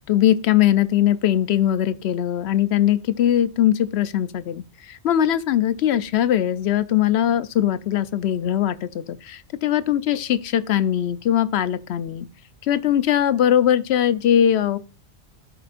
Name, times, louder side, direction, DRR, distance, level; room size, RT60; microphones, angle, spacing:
voice 1, 0.1-12.3 12.6-14.8, left 11 dB, 70° left, 0.8 m, -20 dB
13.0 x 5.0 x 2.4 m
omnidirectional pair, 1.1 m